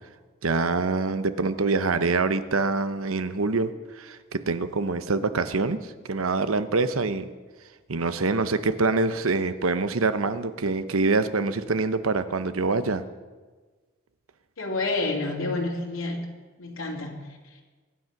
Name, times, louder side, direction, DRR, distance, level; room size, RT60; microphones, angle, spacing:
voice 1, 0.4-7.3 7.9-13.0, right 3 dB, 85° right, 12 dB, 0.9 m, -25 dB
voice 2, 14.6-16.2 16.6-17.6, left 2 dB, 80° left, 0 dB, 2.7 m, -29 dB
23.0 x 9.5 x 6.0 m, 1.4 s
head